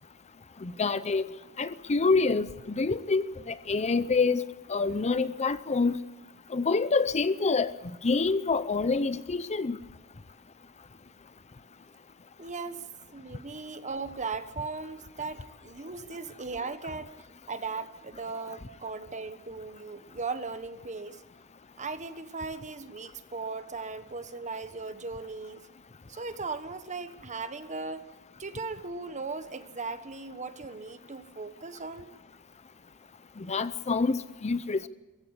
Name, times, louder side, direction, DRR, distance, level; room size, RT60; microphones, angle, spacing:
voice 1, 0.6-1.2 1.6-4.4 4.7-6.0 6.5-9.8 33.4-34.9, left 4 dB, 30° left, 14 dB, 0.6 m, -27 dB
voice 2, 12.4-12.8 13.1-17.1 17.5-21.2 21.8-25.7 26.1-28.1 28.4-32.1, right 4 dB, 35° right, 11 dB, 1.2 m, -38 dB
22.5 x 15.5 x 8.1 m, 1.1 s
head